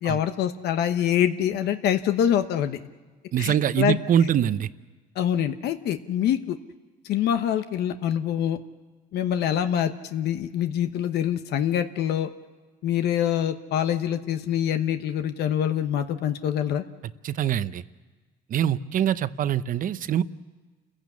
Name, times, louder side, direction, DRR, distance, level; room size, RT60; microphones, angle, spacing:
voice 1, 0.0-2.8 3.4-4.0 5.2-6.6 7.1-8.6 9.1-12.3 12.8-16.8, left 10 dB, 75° left, 8 dB, 1.0 m, -25 dB
voice 2, 3.3-4.7 17.2-17.8 18.5-20.2, right 9 dB, 55° right, 14 dB, 0.8 m, -23 dB
28.5 x 15.5 x 8.4 m, 1.4 s
cardioid pair, 110°, 17 cm